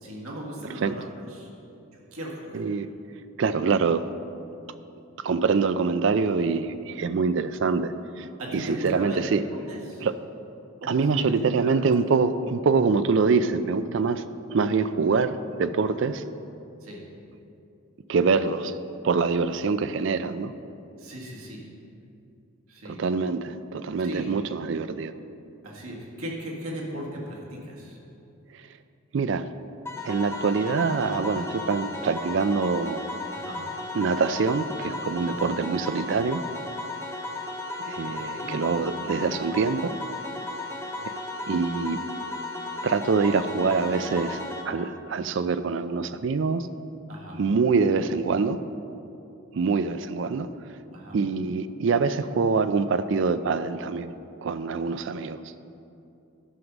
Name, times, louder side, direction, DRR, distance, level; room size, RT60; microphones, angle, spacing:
voice 1, 0.0-1.5 2.1-2.6 8.4-9.2 9.5-10.1 10.8-11.2 11.6-11.7 16.8-17.0 21.0-21.7 22.7-23.0 24.0-24.3 25.6-28.0 33.3-33.6 35.3-35.4 38.0-38.5 47.1-47.4 50.9-51.2, right 1 dB, 90° right, -3 dB, 1.8 m, -37 dB
voice 2, 2.5-2.9 3.4-4.0 5.2-8.3 8.5-9.4 10.0-10.1 10.9-14.2 14.5-16.2 18.1-18.7 19.0-20.5 22.8-25.1 28.5-28.6 29.1-29.5 30.0-33.0 33.9-36.4 37.8-39.9 41.0-41.1 41.5-42.0 42.8-46.7 47.3-48.6 49.5-50.5 51.1-54.1 54.4-55.4, right 4 dB, 60° right, 13 dB, 0.4 m, -25 dB
sound 1, 29.9-44.6, left 2 dB, 15° left, 0.7 m, -35 dB
11.0 x 6.0 x 5.3 m, 2.7 s
head